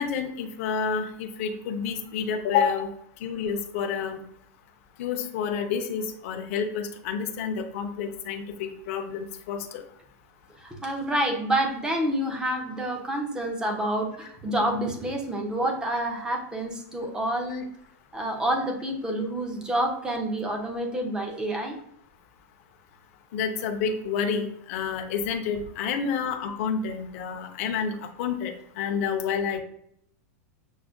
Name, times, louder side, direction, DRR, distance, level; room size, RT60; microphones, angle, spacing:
voice 1, 0.0-2.9 3.2-4.2 5.0-9.8 23.3-28.5 28.8-29.6, left 6 dB, 55° left, 5 dB, 0.5 m, -29 dB
voice 2, 10.6-17.7 18.1-21.8 26.5-26.6, right 1 dB, 10° right, 3 dB, 0.5 m, -28 dB
6.1 x 2.1 x 2.4 m, 0.69 s
supercardioid pair, 155°, 9 cm